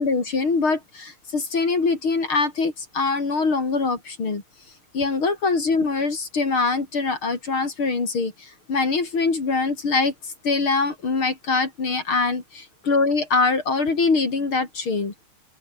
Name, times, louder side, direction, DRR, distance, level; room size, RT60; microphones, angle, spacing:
voice 1, 0.0-4.4 4.9-15.1, left 4 dB, 40° left, 4.1 m, -23 dB
open air
omnidirectional pair, 3.6 m